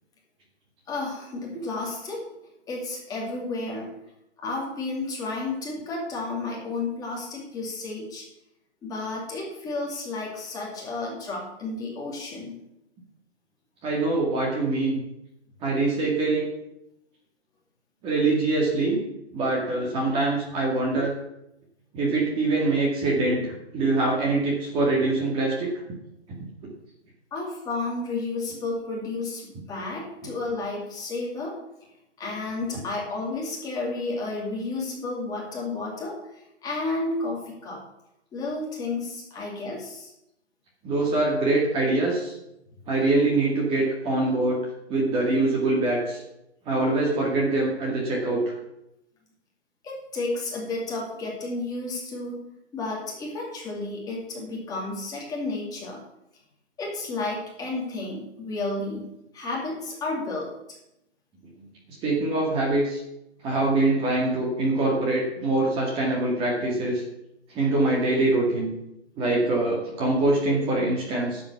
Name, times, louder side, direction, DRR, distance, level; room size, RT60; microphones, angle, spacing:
voice 1, 0.9-2.2 2.7-3.9 4.4-8.2 8.8-12.5 27.3-31.5 32.2-36.1 36.6-37.8 38.3-40.1 49.8-52.4 52.7-56.0 56.8-60.5, left 3 dB, 10° left, -3 dB, 2.4 m, -32 dB
voice 2, 13.8-15.0 15.6-16.5 18.0-19.0 19.3-21.1 21.9-25.7 40.8-42.3 42.9-46.2 46.7-48.4 62.0-63.0 63.4-67.0 67.5-68.7 69.2-71.4, right 2 dB, 15° right, -2 dB, 2.0 m, -24 dB
11.0 x 7.5 x 7.0 m, 0.85 s
hypercardioid pair, 155°, 34 cm